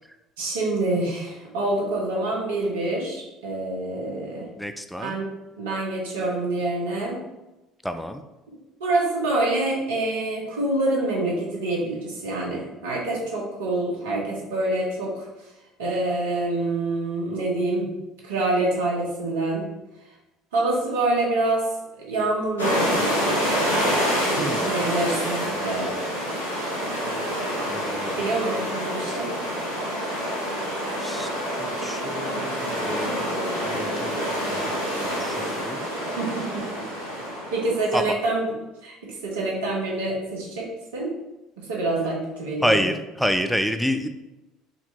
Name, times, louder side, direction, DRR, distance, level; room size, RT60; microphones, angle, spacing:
voice 1, 0.4-4.5 5.0-5.2 5.6-7.2 8.8-15.3 15.8-17.9 18.2-19.7 20.5-21.7 22.0-22.9 24.2-25.9 28.1-29.3 36.2-36.8 37.5-38.5 38.8-39.0 39.2-40.7 40.9-41.1 41.6-42.8, right 2 dB, 80° right, -3 dB, 1.2 m, -26 dB
voice 2, 4.6-5.2 7.8-8.2 24.4-24.7 27.7-28.3 31.0-31.3 31.6-34.7 35.0-35.9 37.9-38.2 42.6-44.1, equal, 5° left, 8 dB, 0.5 m, -28 dB
sound 1, 22.6-38.0, equal, 85° left, 1.3 m, -27 dB
4.2 x 2.9 x 4.1 m, 1.0 s
hypercardioid pair, 60°, 0 cm